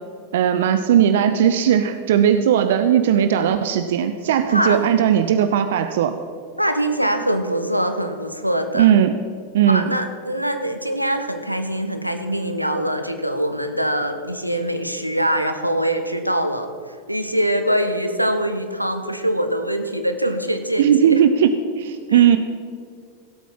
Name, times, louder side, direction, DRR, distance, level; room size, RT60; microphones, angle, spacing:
voice 1, 0.3-6.1 8.7-9.1 9.5-9.9 20.8-22.4, right 9 dB, 55° right, 10 dB, 0.5 m, -17 dB
voice 2, 4.5-4.9 6.6-8.9 9.7-21.2 22.1-22.2, equal, 90° right, 7 dB, 0.9 m, -23 dB
16.5 x 8.3 x 5.6 m, 2.1 s
figure-of-eight pair, 90°, 0 cm